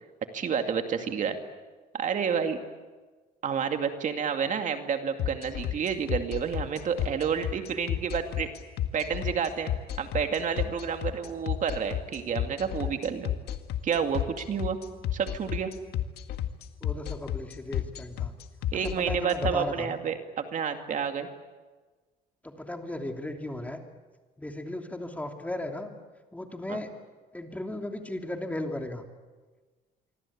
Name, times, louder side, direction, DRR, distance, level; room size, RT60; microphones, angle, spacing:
voice 1, 0.3-1.4 1.9-2.6 3.4-8.5 8.9-9.7 10.0-13.3 13.8-14.8 15.1-15.7 18.7-21.3 26.7-26.8, right 7 dB, 50° right, 6 dB, 2.4 m, -29 dB
sound 1, 5.2-19.5, left 12 dB, 75° left, 1.8 m, -31 dB
voice 2, 16.8-18.3 18.8-20.0 22.4-23.8 24.4-25.9 26.3-26.9 27.3-29.0, left 1 dB, 10° left, 4 dB, 2.9 m, -36 dB
26.0 x 24.5 x 8.7 m, 1.3 s
cardioid pair, 110°, 17 cm